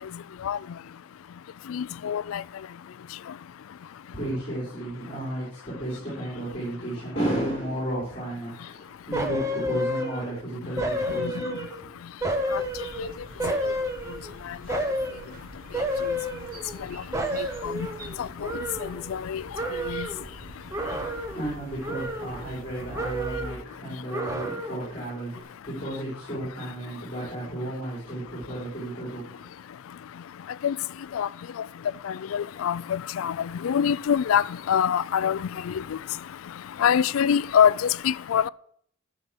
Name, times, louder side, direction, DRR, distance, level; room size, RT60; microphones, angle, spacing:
voice 1, 1.7-2.4 11.2-11.3 12.5-12.6 13.0-13.1 14.7-14.8 17.6-17.7 18.2-18.5 19.1-19.4 19.9-20.1 30.6-30.8 31.1-31.3 32.0-36.0 36.8-38.5, left 8 dB, 85° left, 0.3 m, -24 dB
voice 2, 4.1-11.9 21.0-29.5, right 1 dB, 30° left, 5.1 m, -33 dB
sound 1, 9.1-10.4 10.8-11.9 12.2-14.3 14.7-15.3 15.7-16.9 17.1-19.3 19.6-20.2 20.7-21.5 21.8-22.7 22.9-23.7 24.1-24.9 25.3-25.4, equal, 15° right, 0.9 m, -30 dB
sound 2, 12.5-23.5, right 2 dB, 45° right, 1.2 m, -45 dB
12.0 x 6.9 x 6.0 m
head